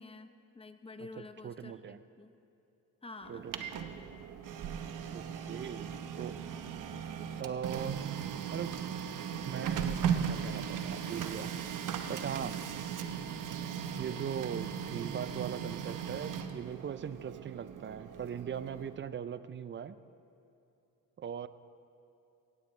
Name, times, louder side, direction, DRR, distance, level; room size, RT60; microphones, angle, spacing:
voice 1, 0.0-2.4 3.0-3.4 5.5-5.6, left 3 dB, 15° left, 9 dB, 0.7 m, -49 dB
voice 2, 1.0-2.0 3.3-3.8 5.1-6.4 7.4-8.1 8.5-8.8 9.4-11.5 12.1-12.6 14.0-20.0 21.2-21.5, right 8 dB, 35° right, 14 dB, 0.4 m, -40 dB
Printer, 3.2-19.0, right 8 dB, 60° right, 1.0 m, -37 dB
17.0 x 16.0 x 3.3 m, 2.8 s
cardioid pair, 100°, 35 cm